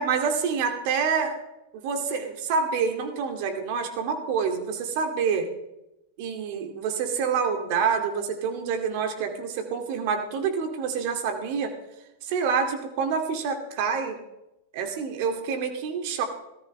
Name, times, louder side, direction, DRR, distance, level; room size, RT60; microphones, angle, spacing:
voice 1, 0.0-1.4 1.7-5.5 6.2-11.7 12.3-14.2 14.7-16.2, right 6 dB, 55° right, 5 dB, 2.3 m, -27 dB
18.0 x 13.5 x 3.3 m, 0.91 s
hypercardioid pair, 105°, 0 cm